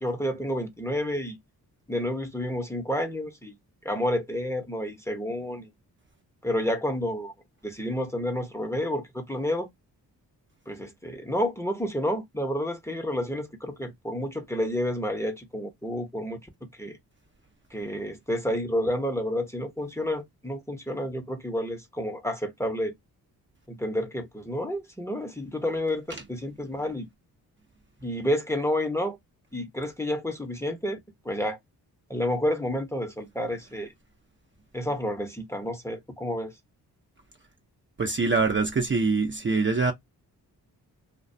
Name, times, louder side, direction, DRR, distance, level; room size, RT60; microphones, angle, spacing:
voice 1, 0.0-1.4 1.9-3.5 3.8-5.7 6.4-7.3 7.6-9.7 10.7-16.4 16.8-17.0 17.7-22.9 23.7-27.1 28.0-29.2 29.5-31.0 31.2-31.6 32.1-33.9 34.7-36.5, left 1 dB, 5° left, 0.7 m, -30 dB
voice 2, 38.0-39.9, right 4 dB, 30° right, 0.6 m, -24 dB
2.4 x 2.1 x 2.5 m
cardioid pair, 55°, 40 cm